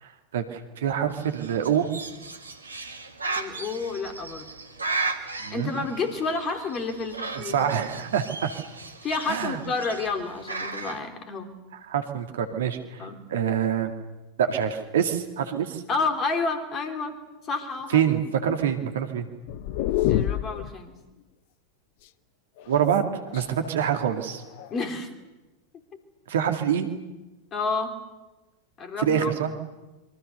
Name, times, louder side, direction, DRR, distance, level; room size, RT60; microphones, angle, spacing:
voice 1, 0.0-1.9 5.4-5.7 7.4-8.5 9.3-9.6 11.7-13.9 14.4-15.8 17.9-19.3 22.7-23.1 23.3-24.4 26.3-26.9 29.0-29.5, right 8 dB, 60° right, 6 dB, 2.3 m, -26 dB
Bird, 1.1-11.0, right 3 dB, 80° right, 1.9 m, -36 dB
voice 2, 3.4-4.5 5.5-7.5 9.0-11.5 13.0-13.2 15.9-17.2 17.4-18.0 20.1-21.0 24.7-25.1 27.5-28.0 28.8-29.3, left 4 dB, 25° left, 6 dB, 3.5 m, -30 dB
sound 1, 19.5-20.7 22.6-23.6 24.4-24.9, left 13 dB, 50° left, 0.8 m, -27 dB
27.0 x 24.0 x 6.8 m, 1.1 s
figure-of-eight pair, 90°, 0 cm